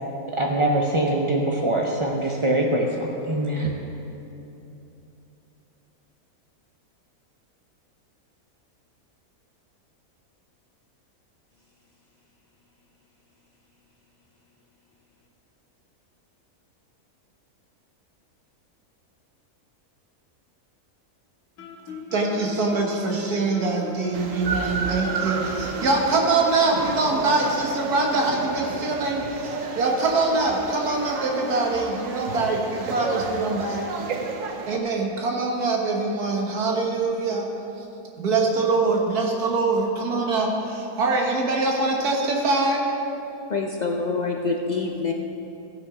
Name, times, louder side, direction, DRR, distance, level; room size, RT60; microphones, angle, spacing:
voice 1, 0.3-3.7, right 1 dB, 50° right, -1 dB, 0.3 m, -23 dB
Guitar, 21.6-29.3, left 2 dB, 80° left, 2.0 m, -40 dB
voice 2, 22.1-33.9 34.7-37.5 38.2-42.9, right 3 dB, 85° right, 0 dB, 1.8 m, -24 dB
sound 1, 24.1-34.8, right 4 dB, 65° right, 1.1 m, -31 dB
voice 3, 43.5-45.1, left 4 dB, 65° left, 1 dB, 0.4 m, -26 dB
15.0 x 6.2 x 4.9 m, 2.9 s
omnidirectional pair, 1.6 m